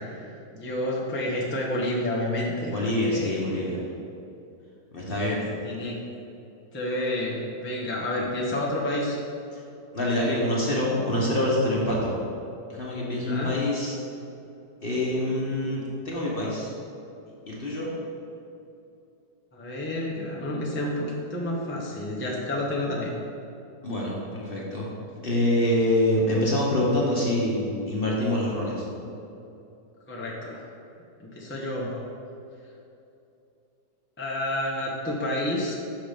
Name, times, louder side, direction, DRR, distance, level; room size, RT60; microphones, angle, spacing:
voice 1, 0.0-3.6 5.6-5.9 6.7-9.2 13.2-13.5 19.5-23.1 30.1-30.6 31.2-32.0 34.2-35.8, left 1 dB, 10° left, -5 dB, 0.8 m, -30 dB
voice 2, 2.7-3.8 4.9-5.4 9.5-9.6 9.9-12.1 12.7-14.0 14.8-16.7 17.5-18.0 23.8-24.9 25.2-28.8, left 1 dB, 35° left, -4 dB, 1.2 m, -25 dB
6.1 x 6.0 x 5.1 m, 2.7 s
omnidirectional pair, 1.8 m